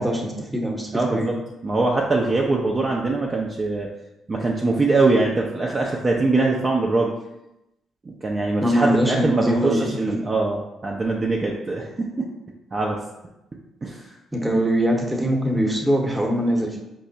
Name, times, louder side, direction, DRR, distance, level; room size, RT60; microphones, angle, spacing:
voice 1, 0.0-1.4 8.6-10.2 14.3-16.8, equal, 15° right, 1 dB, 0.9 m, -23 dB
voice 2, 0.9-1.3 1.6-3.9 4.3-7.1 8.1-12.3 12.7-13.0 13.8-14.1, right 3 dB, 35° right, -1 dB, 0.5 m, -22 dB
5.2 x 2.1 x 2.7 m, 0.91 s
hypercardioid pair, 45°, 0 cm